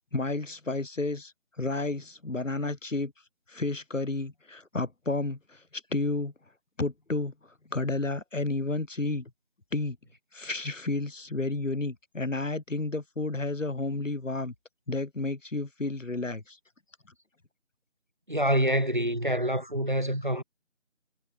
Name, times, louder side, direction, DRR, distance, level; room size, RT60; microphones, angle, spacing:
voice 1, 0.1-1.3 1.6-3.1 3.5-6.3 6.8-7.3 7.7-9.3 9.7-10.0 10.3-14.5 14.9-16.6, left 2 dB, 80° left, 1.9 m, -31 dB
voice 2, 18.3-20.4, equal, 40° right, 0.7 m, -26 dB
figure-of-eight pair, 170°, 38 cm